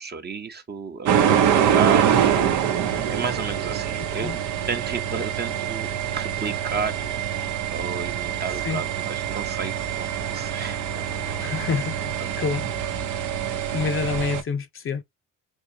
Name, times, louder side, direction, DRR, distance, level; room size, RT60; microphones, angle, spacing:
voice 1, 0.0-2.8 3.1-4.4 4.7-7.1 7.3-11.6 12.2-12.5 13.4-13.9, right 5 dB, 35° right, 0.8 m, -33 dB
sound 1, 1.1-14.4, right 9 dB, 80° right, 0.7 m, -25 dB
voice 2, 4.0-4.4 8.6-8.8 11.4-12.7 13.7-15.0, left 5 dB, 45° left, 0.6 m, -28 dB
3.6 x 2.9 x 2.7 m
cardioid pair, 90°, 30 cm